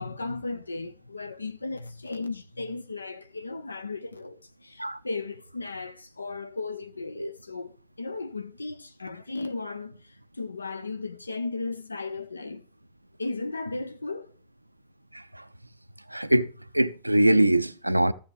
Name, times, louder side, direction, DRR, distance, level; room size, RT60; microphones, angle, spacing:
voice 1, 0.0-7.7 8.0-12.6 13.2-14.3, left 3 dB, 80° left, 0.4 m, -35 dB
voice 2, 15.1-15.5 16.1-18.1, right 1 dB, 85° right, 0.3 m, -23 dB
14.5 x 6.8 x 3.2 m
figure-of-eight pair, 90°, 0 cm